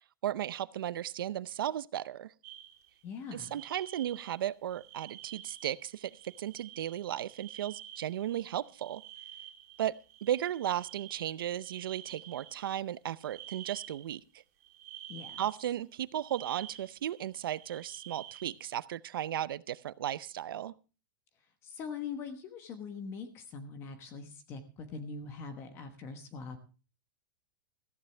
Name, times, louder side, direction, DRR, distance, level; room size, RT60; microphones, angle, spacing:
voice 1, 0.2-2.3 3.3-9.0 9.8-14.2 15.4-20.7, right 11 dB, 85° right, 0.7 m, -35 dB
sound 1, 2.4-3.0 3.4-4.4 4.7-12.7 13.2-14.1 14.6-15.6 16.2-18.6, right 11 dB, 45° right, 3.1 m, -50 dB
voice 2, 3.0-3.5 15.1-15.4 21.6-26.6, left 5 dB, 20° left, 1.2 m, -42 dB
15.0 x 14.5 x 3.3 m
supercardioid pair, 175°, 11 cm